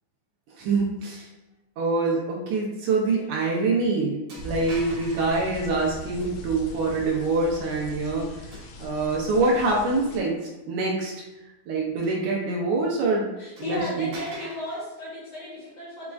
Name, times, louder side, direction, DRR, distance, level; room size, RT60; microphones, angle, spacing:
voice 1, 0.6-1.3 1.8-10.4 10.7-11.1 11.7-13.3 13.6-14.1, right 3 dB, 75° right, -2 dB, 1.9 m, -25 dB
sound 1, 3.4-3.5 4.3-5.4 6.2-6.7 8.5-9.3 9.8-9.9 12.0-12.8 13.1-13.2 13.6-14.9, right 1 dB, 50° right, 2.2 m, -45 dB
sound 2, 4.4-10.2, left 1 dB, 85° left, 2.5 m, -41 dB
voice 2, 13.4-16.1, left 1 dB, 55° left, -6 dB, 1.9 m, -34 dB
6.1 x 3.6 x 2.4 m, 1.0 s
omnidirectional pair, 4.4 m